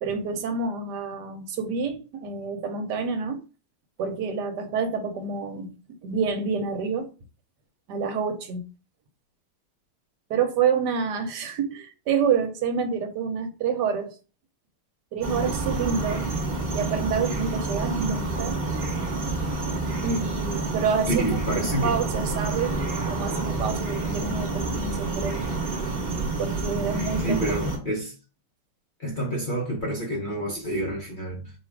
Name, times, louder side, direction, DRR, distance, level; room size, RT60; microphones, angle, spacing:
voice 1, 0.0-3.4 4.0-5.7 6.0-7.1 7.9-8.6 10.3-14.1 15.1-16.3 16.7-18.6 20.0-21.2 21.6-22.8 23.1-25.5 26.4-27.4 27.8-27.9, right 5 dB, 75° right, 1.4 m, -28 dB
sound 1, 15.2-27.8, right 3 dB, 35° right, 1.3 m, -28 dB
voice 2, 21.1-21.9 27.2-28.1 29.0-31.5, right 1 dB, 40° left, 0.8 m, -28 dB
4.6 x 2.4 x 4.6 m
omnidirectional pair, 1.9 m